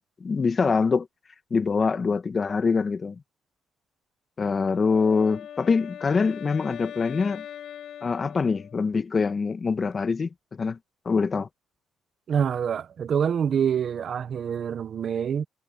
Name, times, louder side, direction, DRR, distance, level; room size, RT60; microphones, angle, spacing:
voice 1, 0.2-1.1 1.5-3.2 4.4-7.4 8.0-10.8 11.0-11.5, left 5 dB, 35° left, 1.3 m, -24 dB
Wind instrument woodwind instrument, 4.5-9.0, left 10 dB, 70° left, 6.0 m, -41 dB
voice 2, 12.3-15.4, right 8 dB, 55° right, 1.1 m, -26 dB
cardioid pair, 90°, 0 cm